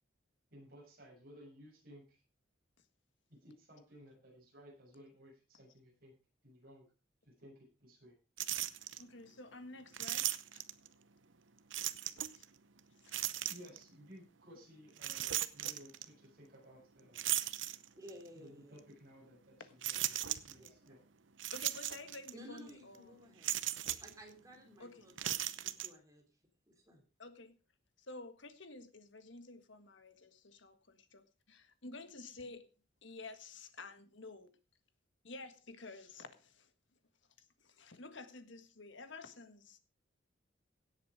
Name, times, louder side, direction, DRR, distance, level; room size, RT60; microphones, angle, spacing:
voice 1, 0.5-2.2 3.3-6.1 6.4-6.8 7.2-8.1 13.5-17.2 18.3-21.0, equal, 45° right, 7.4 m, -57 dB
sound 1, 8.4-9.0 9.9-10.9 11.7-12.4 13.1-13.8 15.0-16.1 17.2-18.2 18.8-18.9 19.8-20.7 21.4-22.3 22.6-22.7 23.4-24.1 25.1-25.9, right 13 dB, 70° right, 0.8 m, -37 dB
voice 2, 9.0-10.6 12.3-12.5 13.0-13.5 19.6-19.7 21.5-23.3 24.8-25.1 27.2-27.6 28.0-32.7 33.0-34.5 35.2-36.7 37.4-39.8, left 3 dB, 70° left, 1.6 m, -51 dB
voice 3, 18.0-18.8 20.5-20.9 22.3-23.5 24.0-26.2 26.7-27.0, equal, 15° right, 3.9 m, -55 dB
17.0 x 8.1 x 5.0 m
head